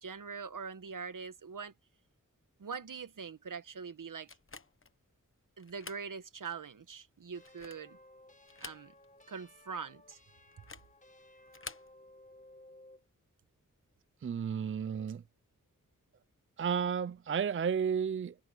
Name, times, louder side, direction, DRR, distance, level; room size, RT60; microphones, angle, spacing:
voice 1, 0.0-1.7 2.6-4.3 5.6-8.0 8.6-8.9 9.3-10.2, right 5 dB, 75° right, 1.3 m, -43 dB
sound 1, 4.3-5.0 5.6-6.1 6.5-6.6 7.3-7.9 8.4-9.2 9.5-9.6 10.5-10.9 11.5-11.9, left 4 dB, 40° left, 1.2 m, -49 dB
sound 2, 7.3-13.1, left 1 dB, 25° left, 1.7 m, -58 dB
voice 2, 14.2-15.2 16.6-18.3, right 7 dB, 40° right, 0.4 m, -32 dB
wide cardioid pair, 65°, 32 cm